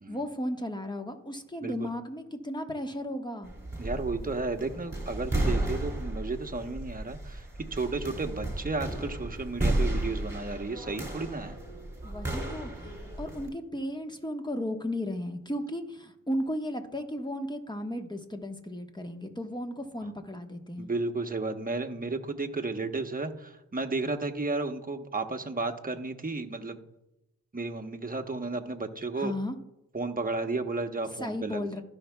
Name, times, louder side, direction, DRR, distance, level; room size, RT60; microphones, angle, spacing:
voice 1, 0.1-3.5 12.0-12.9 13.2-20.9 29.2-29.5 31.2-31.8, left 1 dB, 10° left, 5 dB, 1.3 m, -35 dB
sound 1, 3.4-13.5, right 1 dB, 10° right, 2.6 m, -33 dB
voice 2, 3.8-7.4 7.7-11.6 20.0-20.1 20.8-26.8 27.5-29.3 29.9-31.7, right 3 dB, 25° right, 5 dB, 1.1 m, -33 dB
16.5 x 5.8 x 2.3 m, 0.90 s
supercardioid pair, 40°, 35 cm